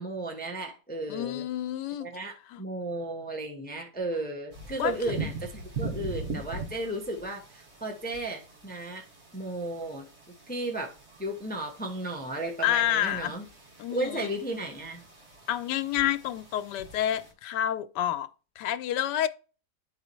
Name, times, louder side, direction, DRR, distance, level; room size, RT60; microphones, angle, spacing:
voice 1, 0.0-1.5 2.0-9.0 9.3-10.1 10.5-10.9 11.2-13.4 13.9-15.0, right 1 dB, 5° left, 0.8 m, -34 dB
voice 2, 1.1-2.1 2.5-2.6 4.8-5.0 12.6-13.4 13.8-14.3 15.5-18.3 18.6-19.3, left 11 dB, 85° left, 1.2 m, -29 dB
sound 1, 4.5-17.3, right 3 dB, 55° right, 2.5 m, -42 dB
11.0 x 4.1 x 3.1 m
omnidirectional pair, 1.8 m